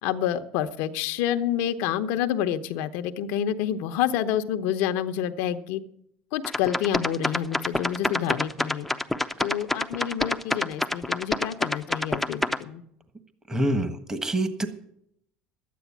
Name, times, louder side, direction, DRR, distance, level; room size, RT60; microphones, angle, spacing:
voice 1, 0.0-5.8 6.3-8.9 9.4-12.8, left 10 dB, 75° left, 9 dB, 0.9 m, -28 dB
sound 1, 6.4-12.6, left 1 dB, 5° left, 0.7 m, -26 dB
voice 2, 13.5-14.7, right 1 dB, 15° right, 9 dB, 1.4 m, -26 dB
12.0 x 9.3 x 7.3 m, 0.72 s
supercardioid pair, 100°, 4 cm